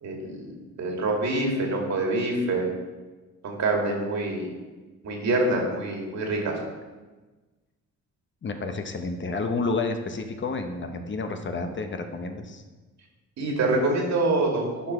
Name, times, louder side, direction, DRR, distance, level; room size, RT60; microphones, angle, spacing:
voice 1, 0.0-2.6 3.4-4.5 5.0-6.6 13.4-14.9, right 2 dB, 65° right, 0 dB, 2.4 m, -26 dB
voice 2, 8.4-12.6, left 3 dB, 40° left, 6 dB, 0.9 m, -30 dB
10.0 x 5.0 x 4.4 m, 1.2 s
cardioid pair, 90°, 30 cm